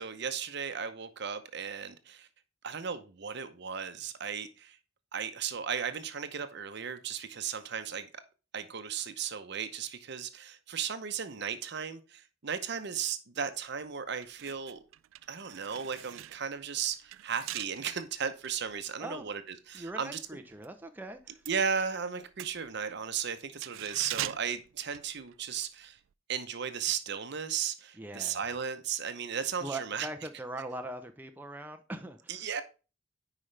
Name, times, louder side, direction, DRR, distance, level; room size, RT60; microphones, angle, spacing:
voice 1, 0.0-2.3 2.6-4.8 5.1-8.1 8.5-14.8 15.3-20.2 21.5-26.0 26.3-30.1 32.3-32.6, right 7 dB, 60° right, 0.8 m, -35 dB
sound 1, 13.6-13.7 14.1-20.7 21.0-25.7 26.0-26.1, right 15 dB, 80° right, 0.3 m, -44 dB
voice 2, 19.7-21.4 28.0-28.4 29.6-32.5, right 1 dB, 10° right, 0.6 m, -41 dB
9.6 x 4.9 x 3.3 m
head